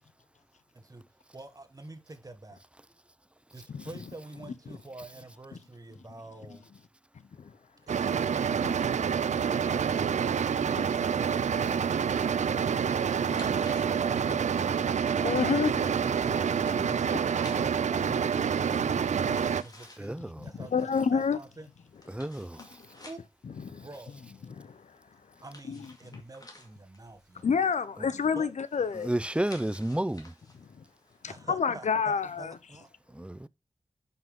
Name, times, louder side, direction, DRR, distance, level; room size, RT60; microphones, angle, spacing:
voice 1, 1.3-2.6 3.5-6.6 7.9-9.2 10.4-12.3 12.6-14.5 15.5-16.6 16.9-20.2 20.4-21.7 22.9-23.2 23.8-24.2 25.4-27.5 28.3-28.5 31.3-32.9, right 2 dB, 30° right, 1.4 m, -47 dB
sound 1, 7.9-19.6, right 7 dB, 85° right, 0.4 m, -27 dB
voice 2, 9.7-10.0 14.7-14.8 15.2-15.8 16.7-17.0 20.4-21.4 23.6-23.9 24.6-24.9 25.7-25.8 26.1-26.2 27.4-29.1 30.7-30.8 31.2-32.5, left 6 dB, 85° left, 0.7 m, -29 dB
sound 2, 13.2-32.1, left 2 dB, 35° left, 2.0 m, -55 dB
voice 3, 20.0-20.5 22.1-22.8 28.9-30.3 33.1-33.5, right 1 dB, 10° right, 0.4 m, -32 dB
11.0 x 5.7 x 3.6 m
wide cardioid pair, 105°, 12 cm